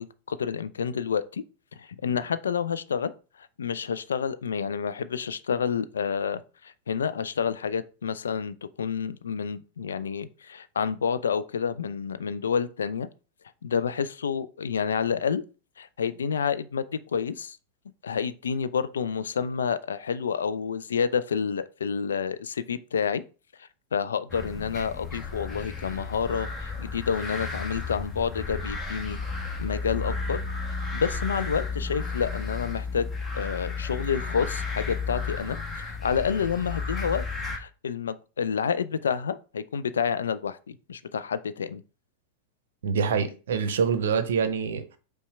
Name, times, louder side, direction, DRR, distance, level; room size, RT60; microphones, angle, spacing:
voice 1, 0.0-1.4 1.8-3.1 3.4-13.1 13.6-15.4 15.8-17.6 18.0-23.2 23.9-29.2 29.6-30.4 30.9-33.1 33.3-37.2 37.6-41.8, left 6 dB, 70° left, 0.3 m, -29 dB
sound 1, 24.3-37.6, left 4 dB, 20° left, 1.2 m, -33 dB
voice 2, 42.8-44.8, right 6 dB, 60° right, 0.7 m, -25 dB
5.4 x 2.2 x 4.2 m
figure-of-eight pair, 90°, 0 cm